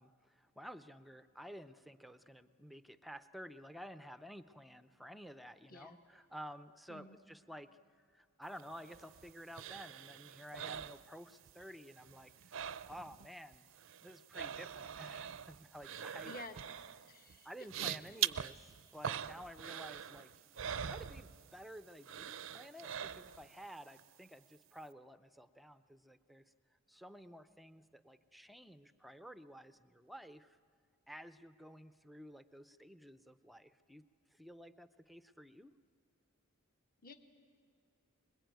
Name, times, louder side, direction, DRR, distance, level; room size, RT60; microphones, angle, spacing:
voice 1, 0.0-13.7 14.0-16.3 17.4-20.3 20.8-30.6 31.1-34.0 34.3-35.8, equal, ahead, 12 dB, 0.6 m, -52 dB
sound 1, 8.6-11.6 11.9-13.3 13.5-21.7 22.0-23.6 24.0-24.1, right 9 dB, 60° right, 0.6 m, -43 dB
voice 2, 16.2-16.6 17.1-17.5 37.0-37.1, left 2 dB, 40° left, 6 dB, 1.4 m, -50 dB
26.0 x 21.5 x 9.2 m, 2.3 s
head